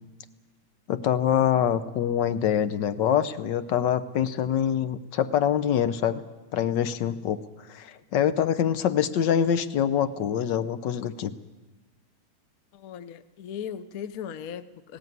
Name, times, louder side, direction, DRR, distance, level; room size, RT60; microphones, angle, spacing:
voice 1, 0.9-6.2 6.5-7.4 7.7-11.3, left 9 dB, 80° left, 12 dB, 1.5 m, -25 dB
voice 2, 12.7-15.0, left 8 dB, 60° left, 13 dB, 1.2 m, -38 dB
19.5 x 16.5 x 9.4 m, 1.1 s
omnidirectional pair, 1.9 m